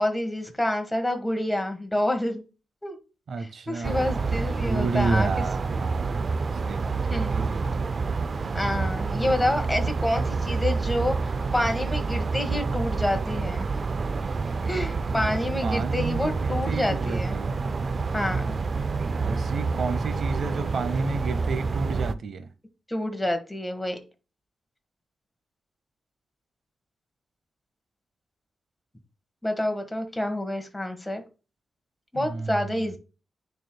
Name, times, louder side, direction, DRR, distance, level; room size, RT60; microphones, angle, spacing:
voice 1, 0.0-2.4 2.8-3.0 3.4-5.4 7.1-7.3 8.5-13.7 14.7-17.4 18.1-18.5 22.9-24.0 29.4-31.2 32.1-33.0, left 1 dB, 5° left, 1.4 m, -28 dB
voice 2, 3.3-6.3 6.6-8.2 15.6-17.6 19.2-22.5 32.1-33.0, right 4 dB, 65° right, 0.8 m, -31 dB
sound 1, 3.8-22.1, right 4 dB, 45° right, 0.4 m, -28 dB
9.4 x 4.5 x 2.2 m
wide cardioid pair, 120°, 0 cm